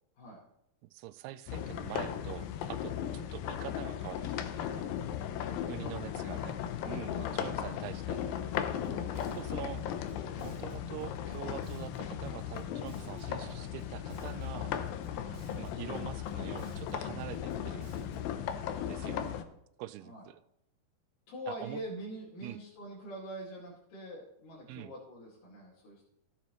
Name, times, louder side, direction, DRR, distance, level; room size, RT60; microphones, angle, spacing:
voice 1, 0.9-4.9 5.7-6.6 6.9-8.2 9.2-9.8 10.4-14.8 15.6-17.9 18.9-19.2 19.8-20.4 21.5-21.8 22.4-22.6 24.7-24.9, right 14 dB, 85° right, 13 dB, 2.5 m, -44 dB
sound 1, 1.5-19.4, left 9 dB, 75° left, 2.3 m, -37 dB
voice 2, 5.7-6.2 7.1-7.7 8.8-9.1 15.0-15.3 18.9-19.4 20.0-20.3 21.3-26.1, right 1 dB, 60° left, -6 dB, 3.4 m, -45 dB
Bass guitar, 8.5-18.4, right 2 dB, 60° right, 2.3 m, -50 dB
16.0 x 7.2 x 3.0 m, 0.77 s
omnidirectional pair, 4.5 m